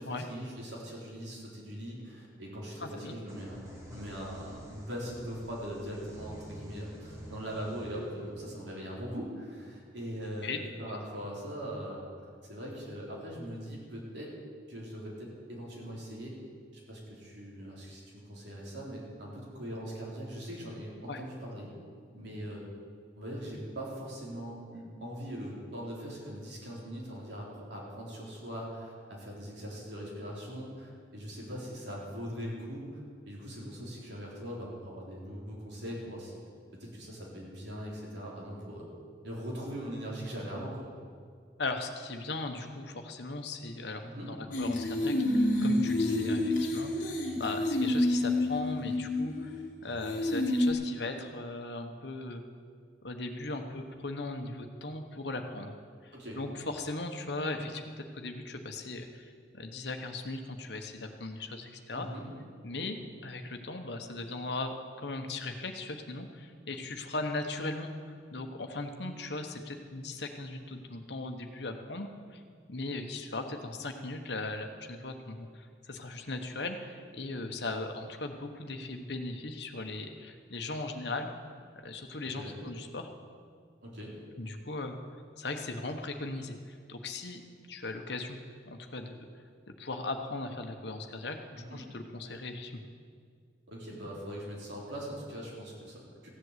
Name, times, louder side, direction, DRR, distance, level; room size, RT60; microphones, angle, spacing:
voice 1, 0.0-3.6 3.9-10.5 10.8-12.0 12.5-14.4 14.7-16.4 16.7-21.7 22.1-22.6 23.2-32.9 33.3-36.4 36.8-38.9 39.2-40.9 44.0-44.3 46.1-46.2 50.4-50.5 56.1-56.4 61.9-62.3 82.4-82.5 83.8-84.1 91.5-91.8 93.7-96.3, equal, 75° right, -4 dB, 3.7 m, -41 dB
voice 2, 2.8-3.2 10.4-10.6 21.1-21.2 41.6-47.1 47.4-49.5 49.8-52.4 53.0-55.8 56.0-62.1 62.6-72.4 72.7-81.3 81.7-83.1 84.4-85.0 85.4-88.4 88.7-89.3 89.7-92.8, left 2 dB, 70° left, 5 dB, 1.2 m, -38 dB
sound 1, 3.3-10.8, equal, 15° right, 2.0 m, -48 dB
sound 2, 44.5-49.6 50.0-50.7, left 1 dB, 45° left, 1.7 m, -28 dB
15.0 x 7.8 x 8.2 m, 2.1 s
head